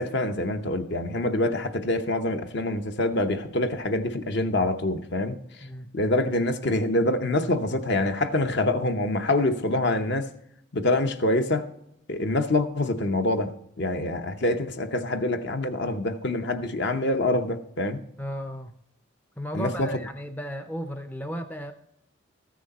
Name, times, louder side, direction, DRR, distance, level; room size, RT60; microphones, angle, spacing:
voice 1, 0.0-5.4 5.9-10.3 10.7-11.7 12.1-13.5 13.8-18.0 19.5-19.9, left 2 dB, 55° left, 0.8 m, -25 dB
voice 2, 18.2-18.7 19.4-21.7, equal, 10° left, 0.5 m, -34 dB
14.0 x 6.3 x 4.1 m
head